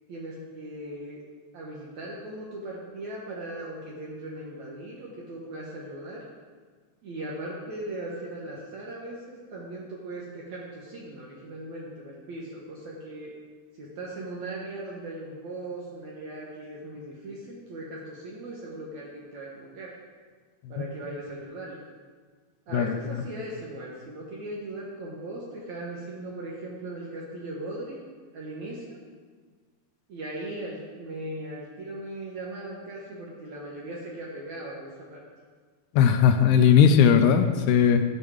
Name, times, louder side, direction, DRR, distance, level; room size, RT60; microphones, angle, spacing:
voice 1, 0.1-1.2 1.5-6.2 7.0-13.3 13.8-19.9 20.7-21.8 22.7-28.0 28.3-29.0 30.1-35.2, right 1 dB, 65° right, -4 dB, 2.4 m, -38 dB
voice 2, 36.0-38.0, left 7 dB, 80° left, 8 dB, 1.9 m, -18 dB
14.5 x 5.3 x 4.9 m, 1.5 s
omnidirectional pair, 3.8 m